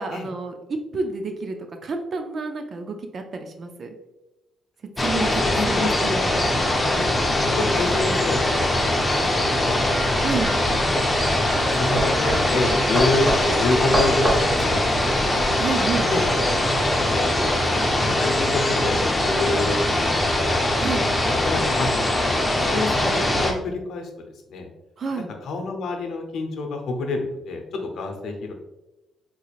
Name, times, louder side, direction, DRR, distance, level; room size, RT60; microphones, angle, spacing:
voice 1, 0.0-1.6 1.8-3.9 5.0-5.3 5.7-6.2 10.2-10.5 15.6-16.1 20.8-21.0 25.0-25.3, right 4 dB, 50° right, 5 dB, 0.4 m, -29 dB
sound 1, 5.0-23.5, left 1 dB, 15° left, 0.6 m, -22 dB
voice 2, 5.1-6.4 6.9-9.8 10.5-10.9 11.1-14.9 16.1-16.2 16.7-19.8 20.5-20.6 21.4-21.9 22.2-22.3 22.7-24.1 24.5-24.7 25.4-28.5, left 3 dB, 75° left, 3 dB, 0.6 m, -28 dB
sound 2, 9.8-15.5, right 1 dB, 20° right, 0.9 m, -27 dB
sound 3, 9.9-16.4, right 1 dB, 85° right, 1.0 m, -40 dB
3.8 x 3.0 x 2.4 m, 0.98 s
cardioid pair, 90°, 0 cm